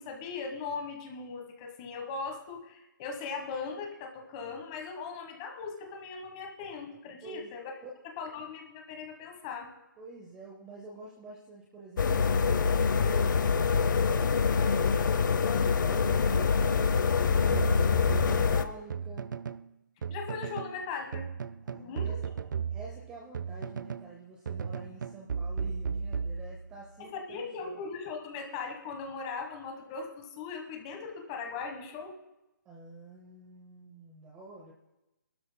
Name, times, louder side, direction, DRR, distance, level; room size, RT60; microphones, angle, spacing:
voice 1, 0.0-7.7 8.2-9.7 15.5-16.0 20.1-21.3 21.7-22.2 27.0-32.1, left 5 dB, 20° left, 3 dB, 1.3 m, -39 dB
voice 2, 7.2-7.5 7.8-7.9 10.0-15.1 15.8-19.3 21.6-22.2 22.7-27.8 32.7-34.7, right 2 dB, 10° right, -2 dB, 0.6 m, -47 dB
sound 1, 12.0-18.6, left 5 dB, 70° left, 0.7 m, -25 dB
sound 2, 17.5-19.7 20.0-20.8 21.1-24.1 24.5-26.9, right 6 dB, 70° right, 0.5 m, -35 dB
22.5 x 12.5 x 2.2 m, 0.97 s
hypercardioid pair, 175°, 11 cm